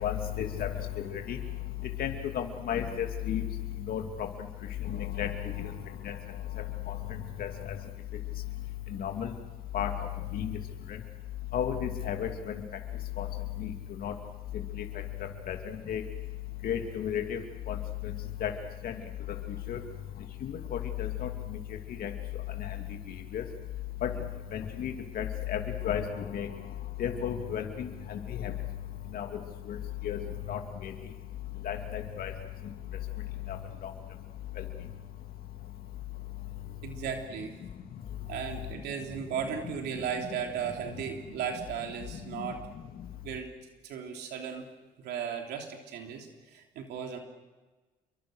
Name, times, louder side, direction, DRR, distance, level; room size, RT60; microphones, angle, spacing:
voice 1, 0.0-0.7 1.3-1.4 2.0-3.4 3.9-4.3 5.2-5.3 6.0-6.1 7.4-7.5 9.0-9.3 9.7-9.9 10.3-10.5 11.5-12.3 13.2-13.3 13.6-13.7 14.0-14.1 15.5-15.6 15.9-16.0 16.6-17.4 17.7-17.8 18.4-18.5 18.8-18.9 19.7-19.8 20.4-20.6 21.0-21.3 22.0-22.1 23.3-23.4 24.0-24.1 24.5-25.6 25.8-26.0 26.3-26.5 27.0-28.2 29.1-29.3 30.0-30.2 30.5-30.9 31.6-32.3, left 9 dB, 60° left, 4 dB, 2.9 m, -32 dB
voice 2, 36.8-37.6 38.3-42.6 43.2-43.5 43.8-44.6 45.0-47.2, right 7 dB, 75° right, 3 dB, 3.2 m, -36 dB
28.5 x 23.5 x 6.5 m, 1.2 s
cardioid pair, 110°, 17 cm